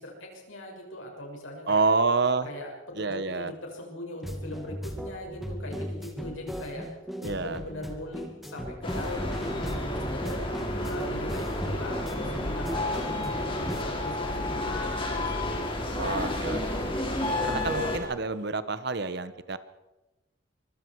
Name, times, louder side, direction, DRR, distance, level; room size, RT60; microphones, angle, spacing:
voice 1, 0.0-1.8 2.5-6.9 7.2-16.5, left 1 dB, 75° left, 0 dB, 6.5 m, -40 dB
voice 2, 1.7-2.5 3.0-3.5 7.2-7.6 16.0-16.8 17.4-19.6, right 4 dB, 55° right, 13 dB, 1.1 m, -28 dB
sound 1, 4.2-13.8, equal, ahead, 2.3 m, -37 dB
sound 2, 8.8-18.0, left 1 dB, 25° left, 4.0 m, -31 dB
24.5 x 24.0 x 4.8 m, 1.1 s
head